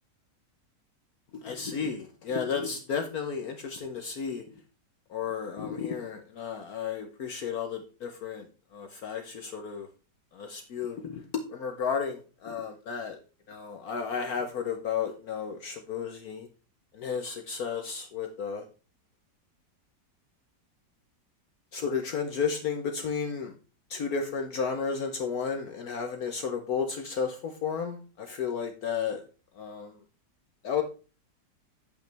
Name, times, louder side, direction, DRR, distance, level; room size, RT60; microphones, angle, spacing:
voice 1, 1.3-4.6 5.1-9.9 10.3-13.2 13.5-16.5 16.9-18.6 21.7-23.5 23.9-29.2 29.5-30.0 30.6-30.8, left 6 dB, 65° left, 5 dB, 1.3 m, -33 dB
8.7 x 8.2 x 3.4 m, 0.34 s
omnidirectional pair, 1.8 m